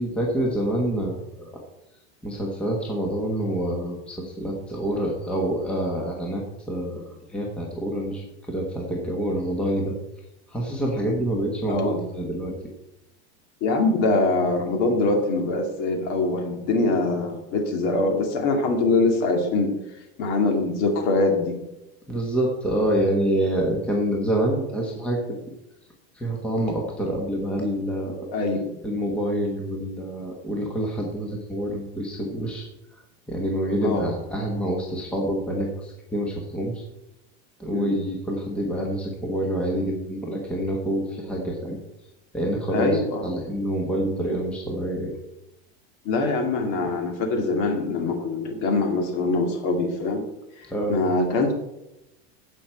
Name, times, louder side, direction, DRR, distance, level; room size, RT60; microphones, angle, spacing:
voice 1, 0.0-1.5 2.2-6.4 6.7-10.0 10.5-12.5 22.1-25.4 26.1-28.3 28.8-32.7 33.3-36.8 37.6-41.8 42.3-45.1 50.7-50.9, right 1 dB, 5° left, -1 dB, 1.2 m, -27 dB
voice 2, 11.7-12.0 13.6-19.8 20.2-21.6 28.3-28.8 33.8-34.1 37.7-38.0 42.7-43.3 46.0-50.2 50.6-51.5, left 3 dB, 45° left, 4 dB, 2.3 m, -23 dB
16.0 x 6.2 x 4.5 m, 0.90 s
supercardioid pair, 180°, 32 cm